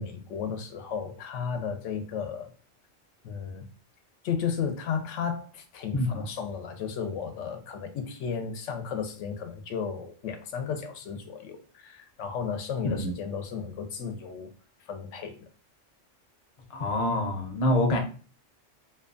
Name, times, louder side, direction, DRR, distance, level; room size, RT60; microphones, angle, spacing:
voice 1, 0.0-2.5 3.2-3.6 4.2-14.5 14.9-15.4, left 6 dB, 75° left, 0.9 m, -34 dB
voice 2, 16.7-18.0, left 1 dB, 55° left, 0.4 m, -26 dB
2.7 x 2.2 x 2.4 m
omnidirectional pair, 1.3 m